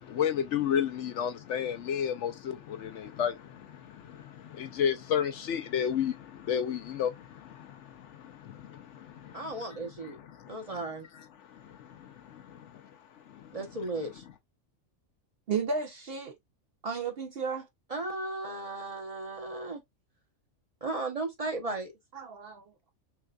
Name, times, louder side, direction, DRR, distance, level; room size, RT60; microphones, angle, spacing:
voice 1, 0.0-10.8 11.1-12.9 13.2-13.6, left 8 dB, 70° left, 0.8 m, -33 dB
voice 2, 9.3-10.2 10.5-11.1 13.5-14.2 17.9-19.8 20.8-21.9, right 2 dB, 30° right, 0.9 m, -35 dB
voice 3, 15.5-16.4 16.8-17.7 22.1-22.9, right 5 dB, 55° right, 0.7 m, -33 dB
5.8 x 2.5 x 2.3 m
omnidirectional pair, 1.4 m